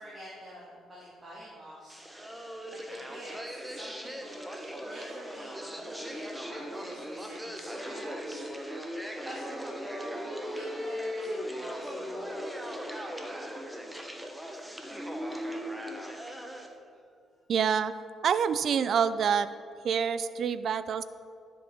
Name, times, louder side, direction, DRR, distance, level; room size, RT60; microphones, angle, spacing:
voice 1, 0.0-2.0 2.7-12.4 14.5-15.0 16.4-16.5 16.9-17.0, equal, 25° right, -7 dB, 2.4 m, -48 dB
sound 1, 1.9-16.7, equal, 5° right, 1.0 m, -38 dB
voice 2, 17.5-17.9 18.2-19.5 19.8-21.0, right 7 dB, 60° right, 14 dB, 0.4 m, -26 dB
12.0 x 7.8 x 3.7 m, 2.2 s
cardioid pair, 90°, 0 cm